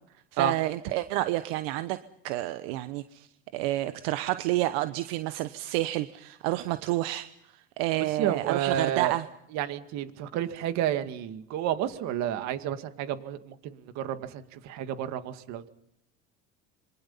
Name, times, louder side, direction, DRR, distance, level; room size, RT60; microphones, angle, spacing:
voice 1, 0.3-2.0 2.2-3.3 3.5-7.3 7.8-9.2, right 16 dB, 85° right, 11 dB, 1.1 m, -29 dB
voice 2, 8.2-9.1 9.5-15.7, right 10 dB, 70° right, 9 dB, 2.2 m, -30 dB
26.5 x 23.5 x 5.6 m, 0.73 s
supercardioid pair, 110°, 29 cm